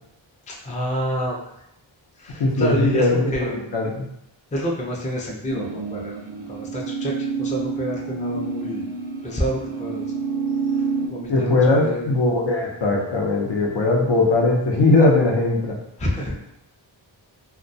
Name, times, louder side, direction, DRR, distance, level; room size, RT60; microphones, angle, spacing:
voice 1, 0.5-1.5 2.2-3.7 4.5-6.2 6.5-8.9 9.2-10.1 10.8-12.2 16.0-16.4, equal, 15° left, -2 dB, 0.4 m, -28 dB
voice 2, 2.4-4.1 11.3-15.8, left 2 dB, 60° left, -2 dB, 0.6 m, -19 dB
sound 1, 5.5-11.1, right 4 dB, 90° right, 0.6 m, -28 dB
2.2 x 2.2 x 2.6 m, 0.79 s
wide cardioid pair, 60°, 48 cm